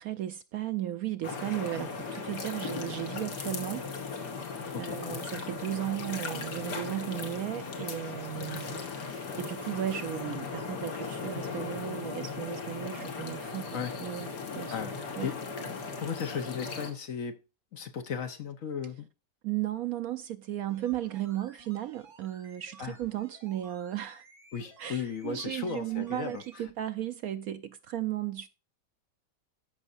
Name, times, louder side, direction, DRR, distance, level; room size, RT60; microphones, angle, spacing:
voice 1, 0.0-3.8 4.8-15.3 19.4-24.2 24.8-28.5, right 13 dB, 70° right, 0.9 m, -35 dB
sound 1, 1.2-16.9, left 5 dB, 75° left, 2.0 m, -37 dB
voice 2, 4.7-5.2 8.5-8.6 13.7-13.9 14.7-15.4 15.8-17.4 17.7-19.1 22.8-23.0 24.5-26.4, left 6 dB, 55° left, 1.1 m, -36 dB
sound 2, 20.7-26.7 27.0-27.1, right 3 dB, 45° right, 2.6 m, -55 dB
13.5 x 5.5 x 2.5 m
omnidirectional pair, 1.8 m